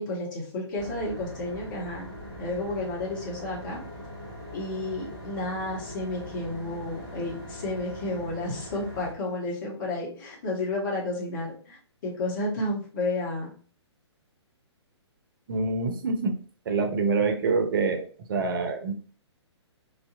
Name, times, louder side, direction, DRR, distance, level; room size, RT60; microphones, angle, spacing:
voice 1, 0.0-2.1 2.4-3.8 4.5-13.5, left 2 dB, 45° left, -2 dB, 1.1 m, -31 dB
sound 1, 0.8-9.1, equal, 20° left, 1.0 m, -41 dB
voice 2, 15.5-16.4 16.7-18.9, right 4 dB, 50° right, 6 dB, 0.4 m, -26 dB
2.5 x 2.1 x 2.4 m, 0.41 s
figure-of-eight pair, 125°, 15 cm